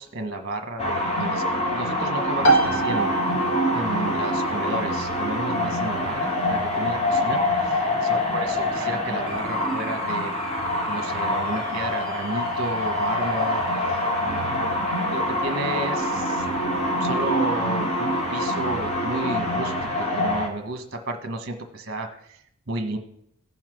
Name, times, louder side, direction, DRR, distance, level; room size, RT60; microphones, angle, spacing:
voice 1, 0.0-3.1 3.7-10.3 10.9-16.5 17.0-22.4 22.7-23.0, right 2 dB, 45° right, 5 dB, 1.2 m, -32 dB
sound 1, 0.8-20.5, left 1 dB, 30° left, 2.5 m, -25 dB
sound 2, 2.4-16.9, right 3 dB, 70° left, 1.3 m, -31 dB
14.5 x 5.8 x 6.2 m, 0.72 s
head